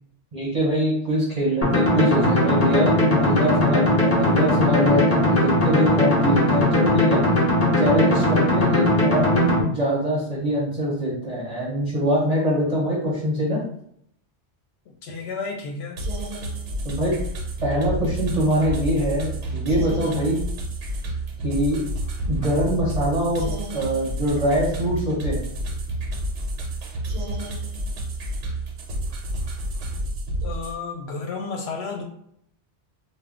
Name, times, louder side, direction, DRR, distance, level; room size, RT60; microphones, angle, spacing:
voice 1, 0.3-7.2 7.8-13.6 16.8-17.2 17.6-20.4 21.4-21.8 22.3-25.4, equal, 40° right, -6 dB, 0.7 m, -23 dB
sound 1, 1.6-9.6, left 1 dB, 20° left, 0.4 m, -19 dB
voice 2, 15.0-16.0 30.4-32.0, left 4 dB, 70° left, 3 dB, 0.8 m, -32 dB
sound 2, 16.0-30.8, right 1 dB, 85° right, 1.0 m, -29 dB
2.2 x 2.2 x 3.5 m, 0.70 s
omnidirectional pair, 1.2 m